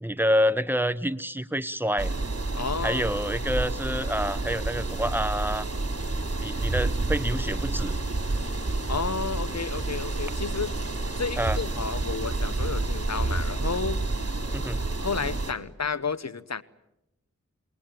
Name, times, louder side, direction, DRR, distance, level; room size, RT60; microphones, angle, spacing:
voice 1, 0.0-2.1 2.8-5.7 6.4-8.0 11.4-11.6 14.5-14.8, equal, 5° right, 13 dB, 1.0 m, -27 dB
sound 1, 2.0-15.5, right 2 dB, 55° right, 3.4 m, -29 dB
voice 2, 2.5-3.0 8.9-10.7 11.2-14.0 15.0-16.6, left 5 dB, 60° left, 16 dB, 1.0 m, -31 dB
28.0 x 20.5 x 9.1 m, 0.88 s
wide cardioid pair, 40°, 29 cm